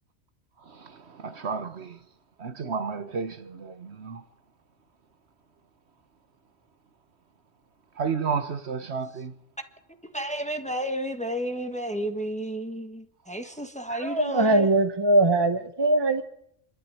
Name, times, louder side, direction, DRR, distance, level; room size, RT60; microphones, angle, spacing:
voice 1, 0.6-2.0 2.4-4.3 7.9-9.3, right 5 dB, 65° right, 1.3 m, -32 dB
voice 2, 10.1-14.7, equal, 5° left, 1.4 m, -32 dB
voice 3, 13.9-16.2, right 2 dB, 20° right, 1.0 m, -21 dB
26.5 x 12.0 x 9.8 m
omnidirectional pair, 1.2 m